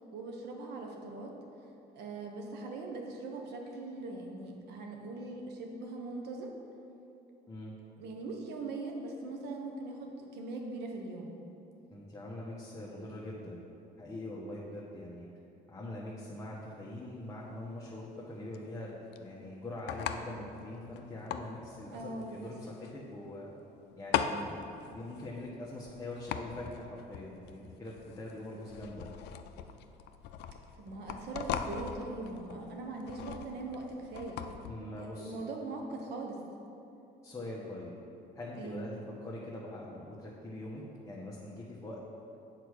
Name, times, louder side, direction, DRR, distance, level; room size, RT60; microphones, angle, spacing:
voice 1, 0.1-1.3 1.9-6.5 8.0-11.3 21.9-22.5 30.7-34.4 35.0-36.4 38.6-38.9, right 3 dB, 80° right, 2 dB, 1.3 m, -41 dB
voice 2, 11.9-13.6 14.0-15.3 15.7-23.5 24.0-24.6 24.9-29.1 34.6-35.4 37.2-37.9 38.3-42.0, left 1 dB, 15° left, -6 dB, 1.1 m, -43 dB
sound 1, 17.0-34.7, left 8 dB, 80° left, 0.5 m, -40 dB
7.9 x 4.8 x 6.5 m, 2.8 s
cardioid pair, 110°, 17 cm